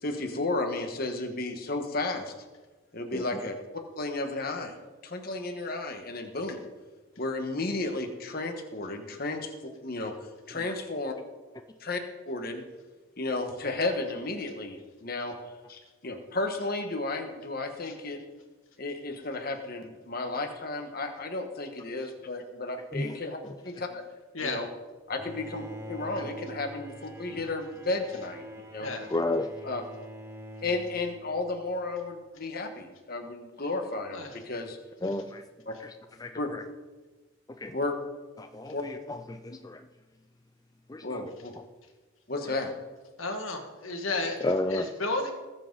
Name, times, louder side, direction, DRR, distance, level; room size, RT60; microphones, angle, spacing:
voice 1, 0.0-2.3 2.9-3.6 4.0-4.8 5.0-6.6 7.2-10.1 10.5-11.1 11.8-12.6 13.2-15.3 15.7-18.2 18.8-23.4 23.6-24.0 24.4-24.7 25.1-28.4 28.7-28.9 29.6-29.8 30.6-34.8 35.7-35.8 36.4-36.5 37.7-37.9 38.7-38.8 41.0-41.5 42.3-42.7, left 2 dB, 45° left, 4 dB, 1.4 m, -33 dB
voice 2, 22.9-23.6 26.2-26.3 29.1-29.5 35.0-35.4 35.8-36.6 37.5-37.8 38.4-39.9 40.9-41.6 44.4-44.9, left 2 dB, 15° left, 7 dB, 0.3 m, -33 dB
Bowed string instrument, 25.2-32.0, right 1 dB, 10° right, 0.9 m, -45 dB
voice 3, 43.2-44.4 44.7-45.3, left 2 dB, 75° left, 4 dB, 1.9 m, -32 dB
19.5 x 7.5 x 4.0 m, 1.3 s
head